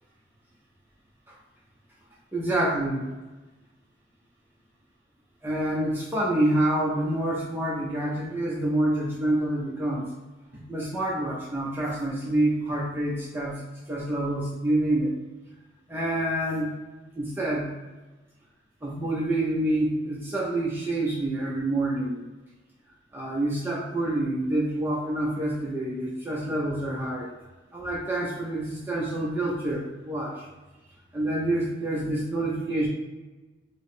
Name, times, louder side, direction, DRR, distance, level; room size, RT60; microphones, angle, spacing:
voice 1, 2.3-3.0 5.4-10.1 10.7-13.6 13.9-15.1 15.9-16.7 17.1-17.7 18.8-22.2 23.1-27.3 27.7-30.5 31.1-32.9, right 1 dB, 10° right, -6 dB, 0.5 m, -27 dB
4.5 x 2.0 x 3.2 m, 1.1 s
head